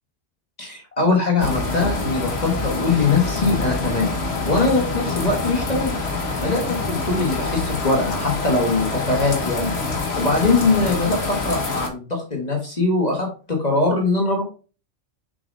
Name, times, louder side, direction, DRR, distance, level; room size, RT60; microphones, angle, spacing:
voice 1, 0.6-4.1 4.4-5.9 6.4-6.6 6.9-9.7 10.2-14.4, left 3 dB, 35° left, 1 dB, 1.5 m, -22 dB
sound 1, 1.4-11.9, left 3 dB, 60° left, 1.4 m, -26 dB
6.8 x 5.2 x 2.7 m, 0.35 s
omnidirectional pair, 1.2 m